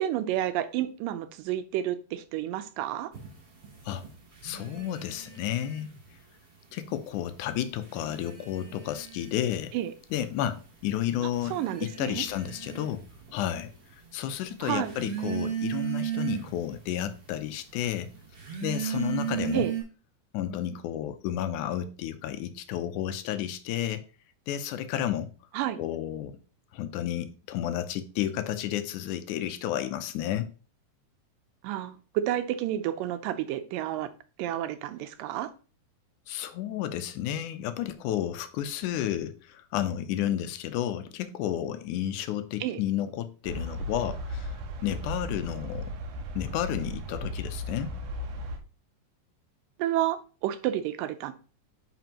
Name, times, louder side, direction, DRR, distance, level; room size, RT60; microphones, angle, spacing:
voice 1, 0.0-3.1 9.7-9.9 11.5-12.2 14.6-14.9 19.5-19.7 25.5-25.8 31.6-34.1 34.4-35.5 42.6-42.8 49.8-51.3, right 12 dB, 85° right, 2.3 m, -30 dB
sound 1, 3.1-6.2 6.5-7.3 7.7-19.8, right 9 dB, 45° right, 3.5 m, -37 dB
voice 2, 4.4-6.0 6.7-9.7 10.1-13.1 13.3-13.7 14.1-18.1 18.6-19.7 20.3-24.0 24.5-25.3 25.8-26.3 26.7-30.5 36.3-44.6 44.8-45.9 46.4-47.9, left 11 dB, 75° left, 2.0 m, -31 dB
sound 2, 43.5-48.6, equal, 70° right, 2.2 m, -36 dB
9.3 x 5.1 x 2.9 m
omnidirectional pair, 3.8 m